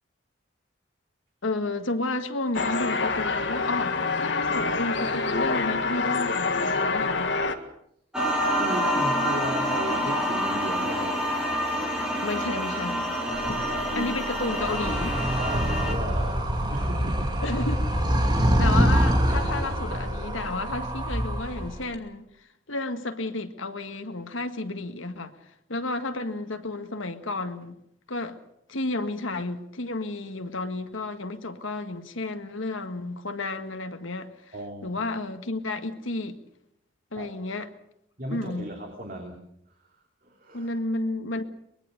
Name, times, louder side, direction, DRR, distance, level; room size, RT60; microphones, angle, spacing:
voice 1, 1.4-7.3 12.2-13.1 13.5-15.2 17.4-17.8 18.6-22.3 22.7-25.4 25.7-27.8 28.1-28.4 28.7-34.5 34.8-36.4 37.1-37.7 38.3-38.7 40.5-41.4, left 2 dB, 85° left, 1.8 m, -32 dB
sound 1, 2.5-7.5, left 4 dB, 65° left, 1.8 m, -26 dB
sound 2, 8.1-15.9, equal, 5° right, 4.0 m, -27 dB
voice 2, 8.5-11.2 13.3-14.1 15.4-17.3 34.5-34.9 37.2-37.3 38.2-39.4 39.7-39.8 40.2-40.7, right 1 dB, 45° right, 3.0 m, -35 dB
Animal, 13.3-21.9, equal, 20° right, 2.4 m, -25 dB
23.5 x 21.0 x 6.7 m
head